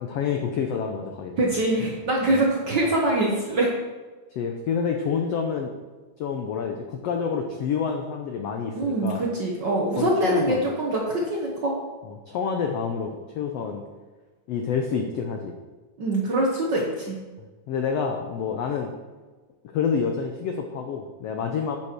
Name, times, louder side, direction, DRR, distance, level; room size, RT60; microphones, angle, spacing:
voice 1, 0.0-1.3 2.3-2.4 4.3-5.7 6.2-9.2 10.0-10.6 12.0-13.8 14.5-15.5 17.7-18.9 19.6-21.8, left 6 dB, 85° left, 3 dB, 1.4 m, -28 dB
voice 2, 1.4-3.7 8.7-11.8 16.0-17.2, right 1 dB, 75° right, -2 dB, 1.0 m, -24 dB
9.9 x 7.5 x 4.5 m, 1.3 s
omnidirectional pair, 3.8 m